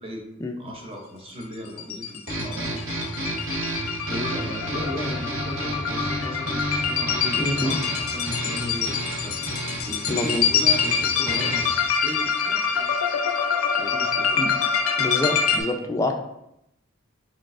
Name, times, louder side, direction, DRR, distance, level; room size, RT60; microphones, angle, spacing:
voice 1, 0.6-3.2 4.1-9.3 9.9-12.9 13.7-14.3, equal, 30° right, 0 dB, 0.7 m, -36 dB
sound 1, 1.7-15.6, left 6 dB, 90° left, 0.5 m, -25 dB
sound 2, 2.3-11.9, right 1 dB, 70° right, 1.0 m, -31 dB
voice 2, 7.4-7.8 10.1-10.5 14.3-14.5 15.0-16.1, left 1 dB, 15° left, 3 dB, 0.3 m, -26 dB
4.4 x 4.0 x 2.5 m, 0.82 s
head